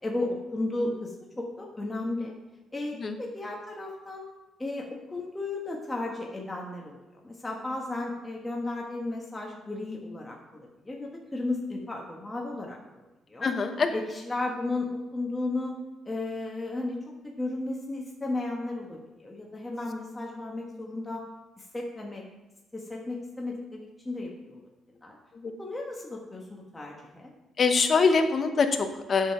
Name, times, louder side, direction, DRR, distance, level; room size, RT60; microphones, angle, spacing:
voice 1, 0.0-2.3 2.7-4.2 4.6-7.0 7.2-12.8 13.3-13.5 13.9-15.7 16.0-17.0 17.2-21.2 21.6-22.2 22.7-24.6 25.0-25.2 25.6-27.3, left 2 dB, 15° left, -1 dB, 1.4 m, -34 dB
voice 2, 13.4-13.9 25.4-25.5 27.6-29.3, left 4 dB, 45° left, 6 dB, 1.1 m, -24 dB
8.0 x 6.7 x 5.8 m, 1.1 s
supercardioid pair, 75°, 0 cm